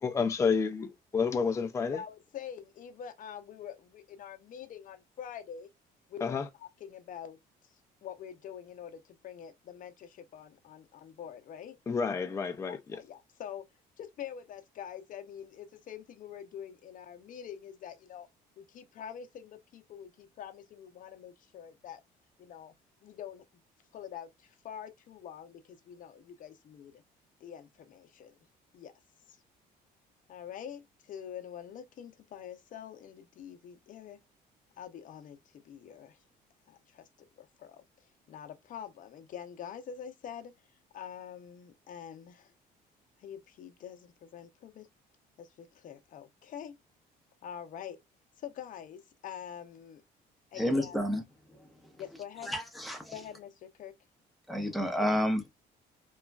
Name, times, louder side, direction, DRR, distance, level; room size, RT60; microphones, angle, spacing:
voice 1, 0.0-2.0 6.2-6.4 11.9-12.8, left 5 dB, 15° left, 0.4 m, -29 dB
voice 2, 1.9-5.7 6.1-7.4 8.0-11.8 12.7-13.6 14.0-18.3 18.6-22.0 22.4-22.7 23.0-23.4 23.9-27.0 27.4-28.4 28.7-28.9 29.3-29.4 30.3-34.2 34.8-36.2 36.7-37.1 37.4-37.8 38.3-42.5 43.2-44.9 45.4-46.7 47.4-48.0 48.4-50.0 50.5-51.0 52.0-52.6 53.1-53.9, left 9 dB, 50° left, 0.7 m, -45 dB
voice 3, 50.5-51.2 51.8-51.9 52.5-53.1 54.5-55.5, equal, ahead, 0.8 m, -30 dB
3.0 x 2.3 x 2.2 m
cardioid pair, 110°, 17 cm